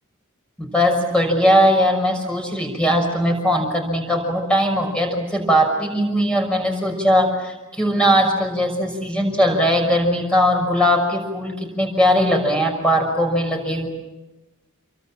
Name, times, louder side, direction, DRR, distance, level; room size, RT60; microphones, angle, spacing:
voice 1, 0.6-13.9, equal, 5° left, 2 dB, 5.9 m, -19 dB
28.5 x 24.0 x 7.5 m, 1.1 s
head